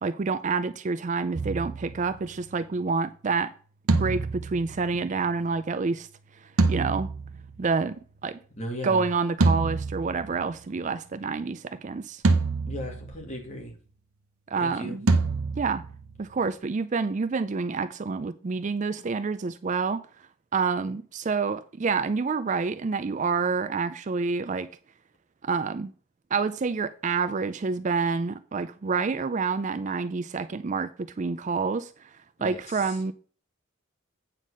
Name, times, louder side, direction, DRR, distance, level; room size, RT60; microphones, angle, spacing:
voice 1, 0.0-3.5 4.0-6.1 6.4-7.1 7.6-8.4 8.8-12.2 14.5-15.1 15.6-15.8 16.2-24.7 25.4-25.9 26.3-32.1 32.4-33.1, right 4 dB, 35° right, 0.4 m, -28 dB
sound 1, 1.3-2.6 3.9-5.6 6.6-7.9 9.4-10.8 12.2-13.4 15.1-16.5, right 3 dB, 75° right, 0.9 m, -27 dB
voice 2, 8.6-9.0 12.7-13.7 14.6-15.0 32.4-32.6, equal, 30° left, 2.2 m, -36 dB
9.1 x 4.0 x 6.2 m
head